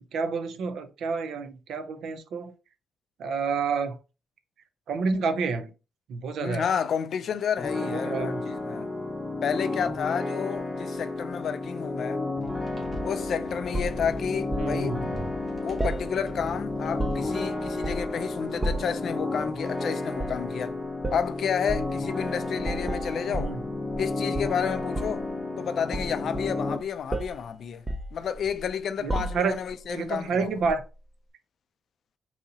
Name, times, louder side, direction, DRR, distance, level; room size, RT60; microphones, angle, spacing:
voice 1, 0.1-2.5 3.2-4.0 4.9-5.7 6.1-6.7 7.9-8.4 14.6-15.0 23.3-23.6 29.0-29.5 29.9-30.8, right 4 dB, 80° right, 0.5 m, -29 dB
voice 2, 6.4-8.9 9.4-12.2 13.0-15.0 15.6-20.8 21.1-23.5 24.0-25.3 25.6-27.9 28.1-30.6, left 7 dB, 65° left, 0.4 m, -31 dB
sound 1, 7.6-26.8, left 2 dB, 10° left, 0.7 m, -32 dB
sound 2, 12.4-17.8, right 1 dB, 40° right, 1.4 m, -42 dB
sound 3, 13.7-14.7 15.8-16.5 16.8-17.4 17.8-18.2 18.6-19.0 20.1-20.5 21.0-21.3 21.7-21.9 22.6-24.1 24.3-25.3 25.9-26.8 27.1-27.4 27.9-28.7 29.1-29.7 30.6-30.8, right 2 dB, 20° right, 0.5 m, -32 dB
3.9 x 2.8 x 2.8 m
cardioid pair, 85°, 0 cm